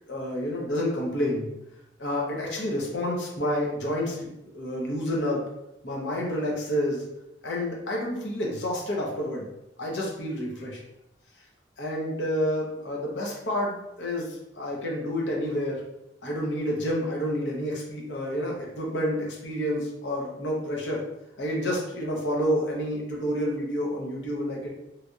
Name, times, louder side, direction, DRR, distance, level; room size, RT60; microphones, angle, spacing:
voice 1, 0.1-1.5 2.0-4.3 4.5-5.4 5.8-7.1 7.4-9.5 9.8-10.8 11.8-15.8 16.2-21.0 21.4-24.7, equal, 70° left, -2 dB, 0.9 m, -29 dB
3.2 x 2.8 x 2.4 m, 0.85 s
head